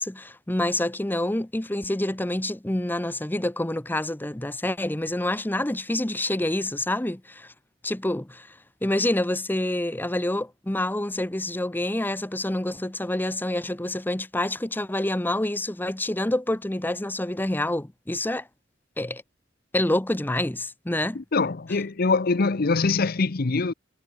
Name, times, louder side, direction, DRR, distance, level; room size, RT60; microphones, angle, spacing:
voice 1, 0.0-7.5 7.8-18.5 19.0-19.2 19.7-21.2, left 1 dB, 10° left, 0.8 m, -27 dB
voice 2, 21.1-23.7, left 4 dB, 50° left, 0.7 m, -23 dB
head